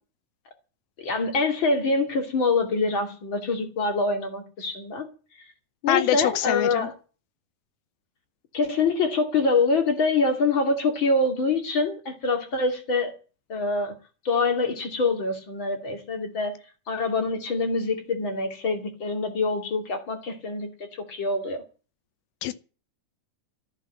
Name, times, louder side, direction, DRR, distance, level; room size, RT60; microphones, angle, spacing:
voice 1, 1.0-5.1 5.8-6.9 8.5-13.1 13.5-13.9 14.2-16.6 16.9-21.6, left 3 dB, 35° left, 2.9 m, -25 dB
voice 2, 5.9-6.9 22.4-22.5, left 12 dB, 85° left, 2.8 m, -24 dB
14.0 x 8.2 x 8.7 m
omnidirectional pair, 4.2 m